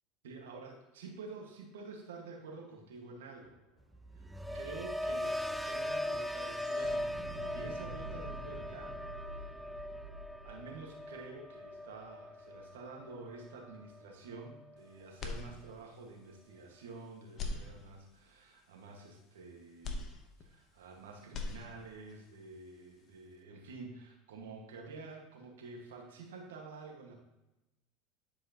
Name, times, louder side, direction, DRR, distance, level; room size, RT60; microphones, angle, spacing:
voice 1, 0.2-3.6 4.1-4.3 4.5-7.2 7.5-9.5 10.4-20.1 20.4-27.2, right 3 dB, 85° right, 1 dB, 1.6 m, -49 dB
sound 1, 3.4-3.5 3.8-12.0, right 2 dB, 65° right, 1.7 m, -49 dB
sound 2, 3.9-14.0 14.4-14.8, left 1 dB, 5° right, 0.4 m, -40 dB
sound 3, 15.2-16.1 16.5-16.6 17.3-18.3 19.8-20.9 21.2-22.1, left 3 dB, 40° left, 0.9 m, -42 dB
10.5 x 4.9 x 2.9 m, 0.98 s
hypercardioid pair, 100°, 0 cm